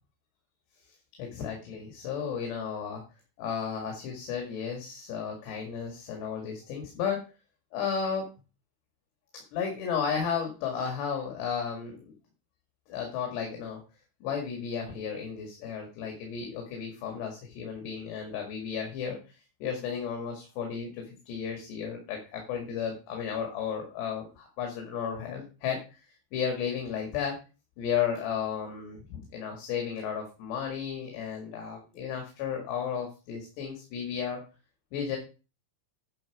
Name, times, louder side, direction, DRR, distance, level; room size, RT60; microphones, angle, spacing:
voice 1, 1.2-3.0 3.4-7.2 7.7-8.3 9.5-12.1 12.9-13.8 14.2-19.2 19.6-25.8 26.3-27.4 27.8-34.4 34.9-35.2, left 7 dB, 75° left, 2 dB, 4.1 m, -33 dB
10.5 x 6.2 x 4.7 m, 0.32 s
omnidirectional pair, 5.0 m